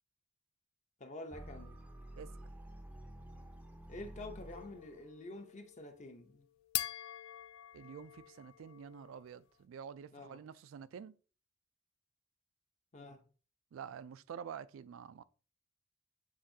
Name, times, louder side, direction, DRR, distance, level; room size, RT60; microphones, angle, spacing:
voice 1, 1.0-1.8 3.9-6.5 10.1-10.4 12.9-13.3, left 2 dB, 35° left, 0.7 m, -48 dB
sound 1, 1.3-5.1, right 1 dB, 5° right, 0.5 m, -50 dB
sound 2, 4.5-9.4, left 14 dB, 85° left, 0.3 m, -45 dB
voice 2, 7.7-11.1 13.7-15.2, right 7 dB, 75° right, 0.3 m, -48 dB
7.3 x 2.6 x 2.7 m
head